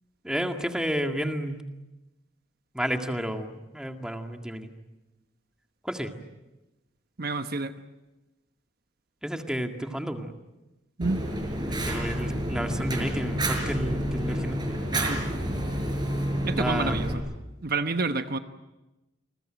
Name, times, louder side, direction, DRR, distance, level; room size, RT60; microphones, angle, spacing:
voice 1, 0.2-1.6 2.7-4.7 5.8-6.1 9.2-10.3 11.7-14.6 16.6-17.2, equal, 5° right, 4 dB, 2.0 m, -31 dB
voice 2, 7.2-7.7 11.0-11.2 14.9-15.3 16.4-17.2 17.6-18.4, right 3 dB, 55° right, 8 dB, 1.1 m, -29 dB
Fire, 11.0-17.1, right 1 dB, 25° right, 5.3 m, -29 dB
29.0 x 21.0 x 9.0 m, 1.0 s
head